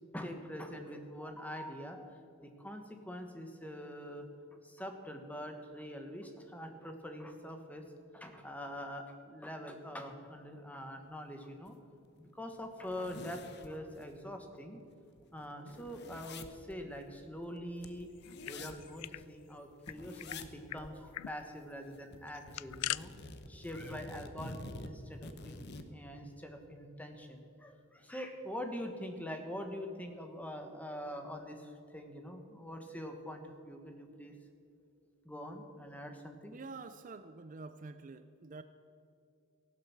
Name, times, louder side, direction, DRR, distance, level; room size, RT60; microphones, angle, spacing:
voice 1, 0.1-4.3 4.6-7.8 8.1-11.8 12.3-14.8 15.3-18.1 18.5-34.3 35.2-36.6, equal, 5° left, 5 dB, 1.3 m, -44 dB
sound 1, 11.7-11.8 12.1-12.2 12.6-14.2 14.6-14.7 14.9-19.3 19.8-20.5 20.8-20.9 21.3-22.2 22.5-25.9, left 2 dB, 50° left, 0.9 m, -48 dB
sound 2, 18.2-19.2 19.5-19.6 19.9-20.4 20.7-20.8 21.1-21.3 22.3-23.0, left 15 dB, 90° left, 0.3 m, -40 dB
voice 2, 36.5-38.6, right 3 dB, 35° right, 11 dB, 0.4 m, -47 dB
15.0 x 11.5 x 7.2 m, 2.6 s
head